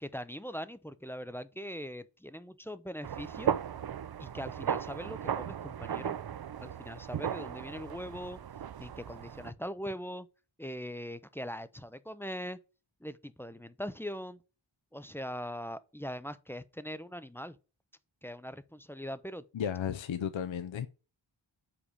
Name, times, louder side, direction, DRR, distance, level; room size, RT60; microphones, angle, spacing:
voice 1, 0.0-3.5 4.2-6.2 6.6-8.4 8.8-10.3 10.6-12.6 13.0-14.4 14.9-17.6 18.2-19.4, equal, 5° left, 0.4 m, -41 dB
sound 1, 3.0-9.5, right 8 dB, 55° right, 0.5 m, -36 dB
voice 2, 19.5-20.9, left 8 dB, 70° left, 0.6 m, -34 dB
5.0 x 4.9 x 5.1 m
wide cardioid pair, 50°, 48 cm